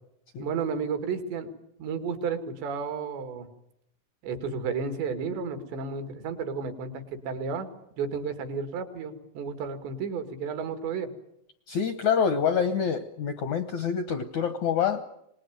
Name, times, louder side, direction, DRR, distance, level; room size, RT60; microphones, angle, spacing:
voice 1, 0.4-1.5 1.8-3.5 4.2-7.7 8.0-11.1, right 5 dB, 85° right, 8 dB, 4.3 m, -32 dB
voice 2, 11.7-15.1, left 7 dB, 75° left, 9 dB, 1.7 m, -26 dB
25.0 x 20.0 x 9.3 m, 0.80 s
omnidirectional pair, 4.9 m